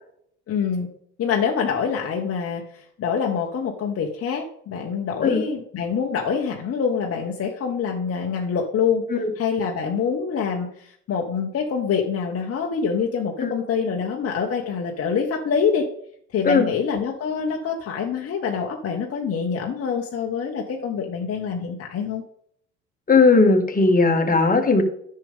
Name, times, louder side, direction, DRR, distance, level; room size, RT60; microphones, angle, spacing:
voice 1, 0.5-0.9 1.2-9.0 9.4-15.9 16.3-22.2, left 6 dB, 40° left, 1 dB, 1.2 m, -25 dB
voice 2, 23.1-24.8, left 3 dB, 25° left, 4 dB, 1.9 m, -17 dB
10.5 x 6.8 x 3.6 m, 0.67 s
hypercardioid pair, 65°, 36 cm